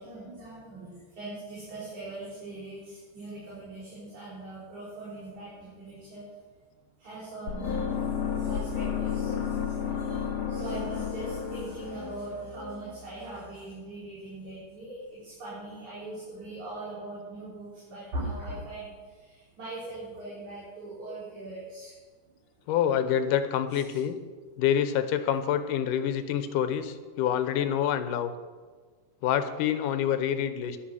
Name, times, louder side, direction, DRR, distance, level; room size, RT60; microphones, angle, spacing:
voice 1, 0.0-6.2 7.0-7.9 8.3-9.3 10.1-18.9 19.6-21.9 23.7-24.0, right 2 dB, 65° right, -9 dB, 5.6 m, -40 dB
sound 1, 7.5-13.5, left 7 dB, 65° left, 2.1 m, -32 dB
voice 2, 22.7-24.2 24.6-28.3 29.2-30.8, left 9 dB, 90° left, 10 dB, 2.4 m, -27 dB
11.5 x 11.0 x 6.3 m, 1.4 s
omnidirectional pair, 3.7 m